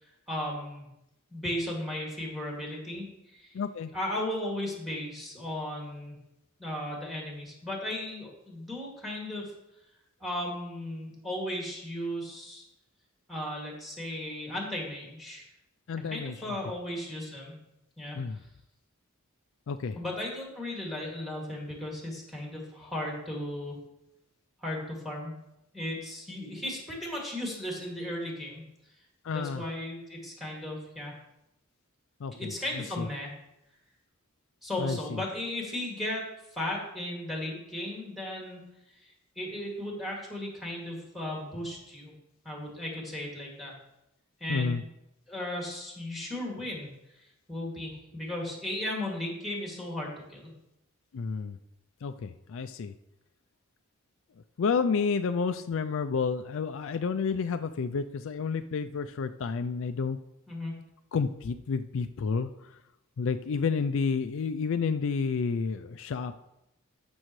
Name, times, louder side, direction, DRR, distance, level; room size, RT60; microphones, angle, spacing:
voice 1, 0.3-0.9 1.3-3.6 3.9-6.2 6.6-9.4 10.2-12.6 13.3-15.5 16.0-17.6 18.0-18.4 20.0-23.8 24.6-25.3 25.7-28.6 29.3-31.2 32.4-33.3 34.6-36.2 36.5-38.6 39.0-42.1 42.4-43.7 44.4-44.9 45.3-46.9 47.5-50.5 60.5-60.7, left 1 dB, ahead, -1 dB, 2.3 m, -36 dB
voice 2, 3.5-3.9 15.9-16.3 18.1-18.4 19.7-20.0 29.2-29.6 32.2-33.1 34.8-35.2 44.5-44.8 51.1-51.6 52.0-52.9 54.6-60.2 61.1-62.5 63.2-66.3, left 5 dB, 65° left, 9 dB, 0.4 m, -30 dB
14.0 x 6.2 x 3.1 m, 0.87 s
head